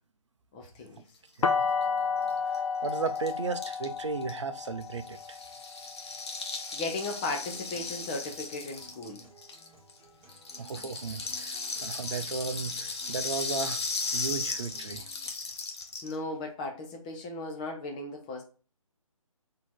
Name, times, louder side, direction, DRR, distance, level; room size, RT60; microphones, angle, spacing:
voice 1, 0.5-1.0 6.7-9.2 16.0-18.4, left 2 dB, 15° left, 0.5 m, -36 dB
sound 1, 1.4-7.3, left 5 dB, 70° left, 0.7 m, -32 dB
Rattle (instrument), 2.3-2.4 2.5-2.6 2.8-10.0 10.3-16.1, left 4 dB, 50° left, 1.1 m, -36 dB
voice 2, 2.8-5.4 10.6-13.8 14.1-15.0, right 4 dB, 55° right, 0.7 m, -35 dB
Acoustic guitar, 7.3-15.3, right 5 dB, 20° right, 1.5 m, -56 dB
4.1 x 2.8 x 4.5 m
figure-of-eight pair, 145°, 18 cm